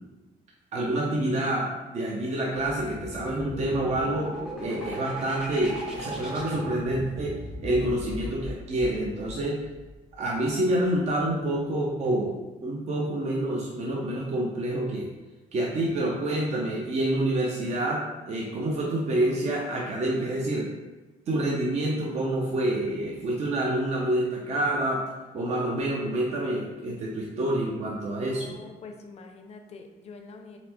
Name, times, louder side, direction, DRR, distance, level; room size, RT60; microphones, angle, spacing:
voice 1, 0.7-4.3 4.6-7.4 7.6-9.6 10.2-15.1 15.5-20.7 21.3-25.0 25.3-28.5, right 1 dB, 45° right, -2 dB, 0.6 m, -27 dB
sound 1, 2.6-10.1, equal, 5° right, 0.7 m, -38 dB
voice 2, 28.1-30.6, left 4 dB, 45° left, 4 dB, 0.5 m, -45 dB
4.2 x 3.4 x 2.9 m, 1.2 s
cardioid pair, 145°, 16 cm